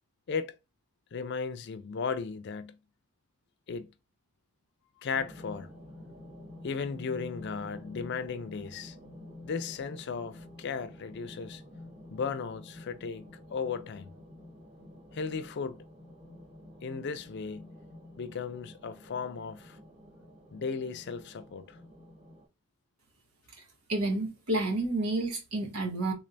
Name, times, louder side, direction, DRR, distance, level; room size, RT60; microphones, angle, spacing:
voice 1, 1.1-2.7 3.7-3.9 5.0-5.7 6.6-9.0 9.4-11.6 12.1-14.1 15.1-15.8 16.8-17.7 18.2-19.8 20.5-21.8, left 5 dB, 50° left, 0.4 m, -36 dB
sound 1, 5.1-22.4, left 1 dB, 30° right, 1.1 m, -49 dB
voice 2, 23.5-26.1, right 2 dB, 85° right, 1.3 m, -30 dB
3.6 x 3.3 x 2.5 m
head